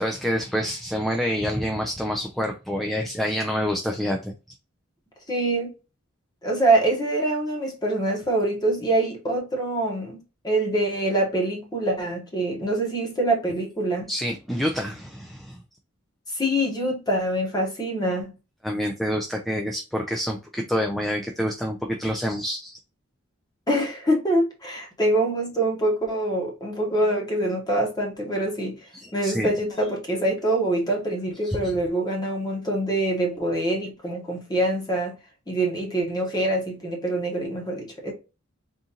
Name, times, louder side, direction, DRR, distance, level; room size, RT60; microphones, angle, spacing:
voice 1, 0.0-4.3 14.1-15.6 18.6-22.8 28.9-29.5 31.4-31.7, equal, ahead, 0.3 m, -27 dB
voice 2, 5.3-5.7 6.4-10.2 10.4-14.1 16.3-18.3 23.7-28.8 29.1-35.1 35.5-38.1, right 1 dB, 20° left, 1.0 m, -25 dB
3.7 x 2.5 x 2.8 m
head